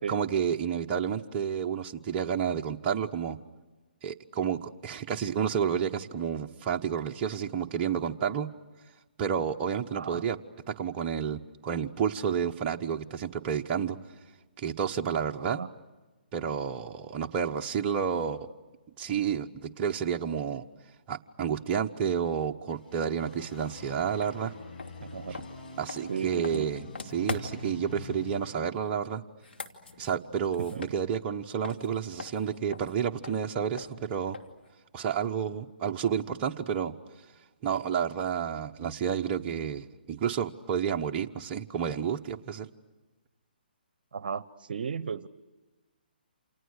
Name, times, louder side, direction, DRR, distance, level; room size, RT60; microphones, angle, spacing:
voice 1, 0.1-3.4 4.0-8.5 9.2-10.4 10.7-14.0 14.6-15.6 16.3-18.5 19.0-20.7 21.1-24.5 25.8-26.9 27.1-29.2 30.0-34.4 34.9-37.0 37.6-42.7, right 7 dB, 25° right, 2 dB, 1.1 m, -30 dB
voice 2, 10.0-10.3 15.5-15.7 25.0-25.4 26.1-26.7 30.6-30.8 44.1-45.3, right 6 dB, 65° right, 17 dB, 0.9 m, -35 dB
sound 1, 22.7-28.4, left 3 dB, 65° left, 6.5 m, -45 dB
sound 2, 24.2-24.3 24.7-27.8 29.3-31.4 31.6-34.7, left 3 dB, 85° left, 2.7 m, -42 dB
29.0 x 28.0 x 6.6 m, 1.2 s
hypercardioid pair, 145°, 5 cm